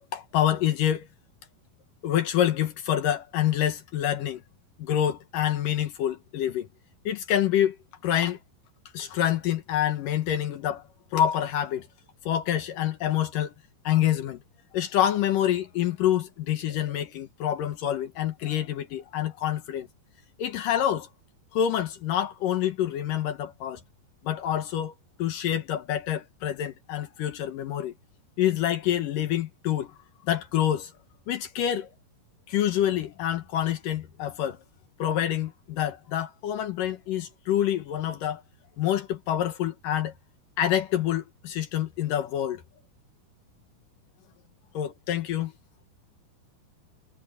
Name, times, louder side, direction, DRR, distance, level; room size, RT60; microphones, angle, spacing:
voice 1, 0.1-1.1 2.0-4.4 4.8-6.7 7.1-7.8 8.0-8.4 8.9-10.8 11.1-11.9 12.3-13.5 13.8-14.4 14.7-19.9 20.4-21.1 21.5-23.8 24.2-24.9 25.2-27.9 28.4-29.9 30.3-30.9 31.3-31.9 32.5-34.6 35.0-38.4 38.8-40.1 40.6-42.6 44.7-45.5, left 11 dB, 70° left, 2.2 m, -27 dB
omnidirectional pair, 5.2 m